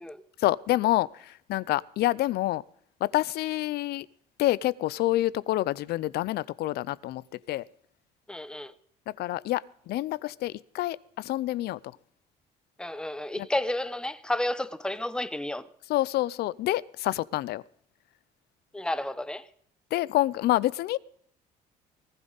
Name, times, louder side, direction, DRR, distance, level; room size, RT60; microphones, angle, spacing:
voice 1, 0.4-2.6 3.0-4.1 4.4-7.2 7.5-7.6 9.2-11.8 13.4-13.5 15.9-17.6 19.9-21.0, left 16 dB, 70° left, 0.6 m, -27 dB
voice 2, 8.3-8.7 12.8-15.6 18.7-19.4, left 1 dB, 5° left, 0.8 m, -31 dB
19.5 x 14.5 x 4.0 m
cardioid pair, 110°, 17 cm